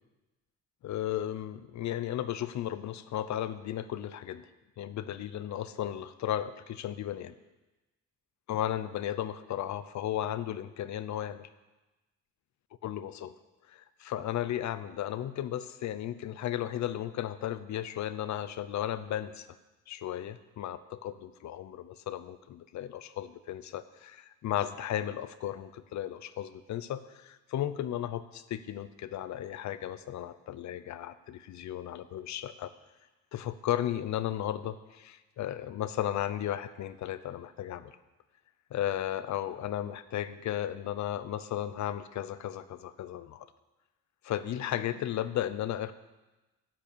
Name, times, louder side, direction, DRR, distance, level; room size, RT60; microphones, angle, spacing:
voice 1, 0.8-4.4 4.8-7.3 8.5-11.5 12.8-13.3 13.7-19.5 19.9-32.7 33.3-38.0 38.7-43.5 44.2-45.9, left 11 dB, 70° left, 13 dB, 0.8 m, -35 dB
11.5 x 8.3 x 6.8 m, 1.1 s
cardioid pair, 90°, 30 cm